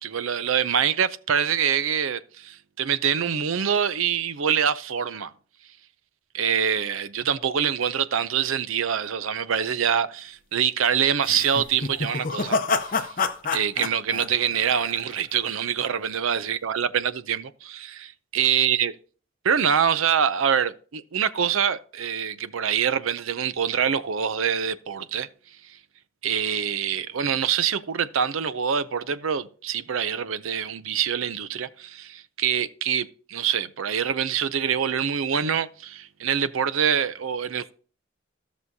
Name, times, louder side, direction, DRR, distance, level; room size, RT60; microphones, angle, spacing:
voice 1, 0.0-5.3 6.3-12.6 12.9-13.1 13.5-18.9 19.4-25.3 26.2-37.7, right 8 dB, 75° right, 0.5 m, -25 dB
sound 1, 11.2-15.4, left 4 dB, 40° left, 0.6 m, -28 dB
15.5 x 6.2 x 2.8 m
head